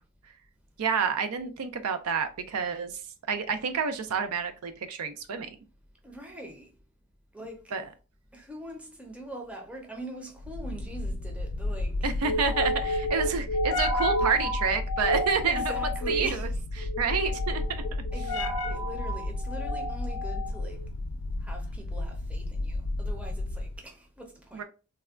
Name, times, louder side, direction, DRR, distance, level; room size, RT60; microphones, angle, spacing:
voice 1, 0.8-2.9 3.3-5.5 7.7-7.8 12.0-15.6 16.1-16.4 16.8-17.6 24.5-24.6, right 5 dB, 90° right, 0.5 m, -29 dB
voice 2, 6.0-6.7 7.3-7.7 8.3-12.2 15.5-16.6 18.1-20.8 21.4-24.6, right 1 dB, 5° right, 0.5 m, -42 dB
sound 1, 10.4-23.8, left 1 dB, 75° left, 0.4 m, -30 dB
3.4 x 2.1 x 2.3 m
head